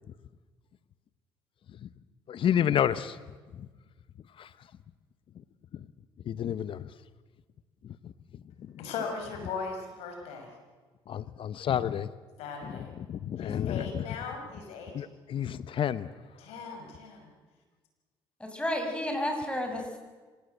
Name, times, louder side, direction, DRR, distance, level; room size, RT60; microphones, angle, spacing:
voice 1, 2.3-3.2 3.6-3.7 4.4-4.5 6.3-6.9 8.0-8.1 11.1-12.1 12.6-12.8 13.1-14.0 14.9-16.1, left 9 dB, 55° left, 0.9 m, -30 dB
voice 2, 8.8-10.5 12.4-12.9 13.4-15.0 16.4-17.3, left 5 dB, 80° left, 5.9 m, -38 dB
voice 3, 18.4-20.0, left 1 dB, 10° left, 6.7 m, -31 dB
26.0 x 17.5 x 8.0 m
supercardioid pair, 65°, 10 cm